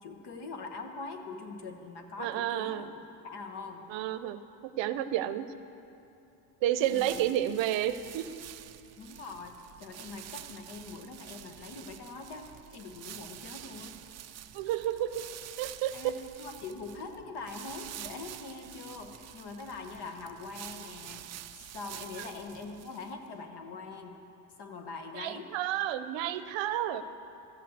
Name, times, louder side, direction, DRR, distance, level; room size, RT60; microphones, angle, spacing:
voice 1, 0.0-2.9 3.2-3.9 6.9-7.2 9.0-14.0 15.9-21.3 21.5-24.2 24.6-25.5, left 3 dB, 55° left, 4 dB, 1.5 m, -43 dB
voice 2, 2.2-2.9 3.9-5.5 6.6-8.2 14.5-15.2 15.6-15.9 25.1-27.0, right 12 dB, 70° right, 12 dB, 0.7 m, -31 dB
sound 1, 6.7-23.3, right 12 dB, 35° right, 0.4 m, -48 dB
13.0 x 7.6 x 8.1 m, 2.7 s
cardioid pair, 120°, 47 cm